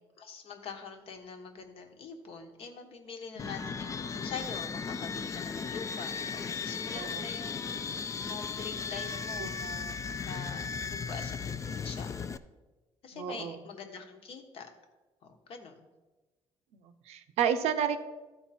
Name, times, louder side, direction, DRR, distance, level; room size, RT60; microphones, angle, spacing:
voice 1, 0.2-12.3 13.0-14.7 15.2-15.9, left 5 dB, 60° left, 5 dB, 1.2 m, -44 dB
sound 1, 3.4-12.4, left 5 dB, 30° left, 0.4 m, -36 dB
voice 2, 6.9-7.3 9.4-9.5 13.1-13.6 16.7-18.0, right 8 dB, 80° right, 10 dB, 0.6 m, -31 dB
13.0 x 4.5 x 4.2 m, 1.2 s
cardioid pair, 100°, 11 cm